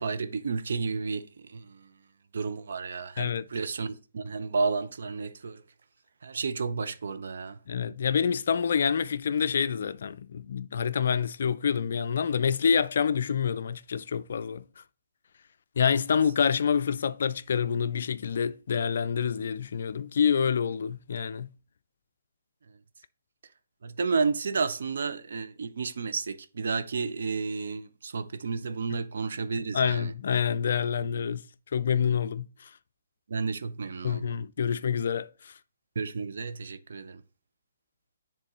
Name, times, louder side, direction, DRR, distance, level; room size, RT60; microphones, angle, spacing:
voice 1, 0.0-1.9 2.3-5.6 6.2-7.6 23.8-30.1 33.3-34.4 36.0-37.2, right 4 dB, 65° right, 0.6 m, -31 dB
voice 2, 7.7-14.6 15.8-21.5 29.7-31.4 31.7-32.7 34.0-35.5, left 7 dB, 60° left, 0.3 m, -27 dB
9.6 x 3.6 x 3.0 m
figure-of-eight pair, 135°, 0 cm